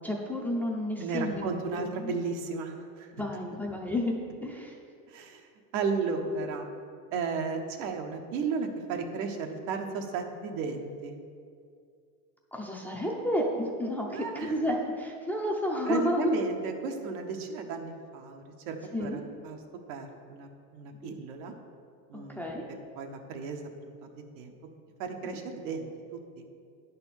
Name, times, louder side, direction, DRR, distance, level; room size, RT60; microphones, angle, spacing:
voice 1, 0.0-2.2 3.1-4.2 4.4-4.8 12.5-16.3 18.9-19.2 21.0-21.1 22.3-22.7, left 1 dB, 5° left, -2 dB, 0.5 m, -31 dB
voice 2, 1.0-3.1 5.1-5.4 5.7-6.7 7.1-11.2 14.1-14.5 15.9-19.6 19.9-21.5 22.1-22.5 23.0-24.5 25.0-26.2, right 5 dB, 80° right, 4 dB, 1.2 m, -34 dB
9.7 x 4.3 x 7.1 m, 2.3 s
cardioid pair, 155°, 42 cm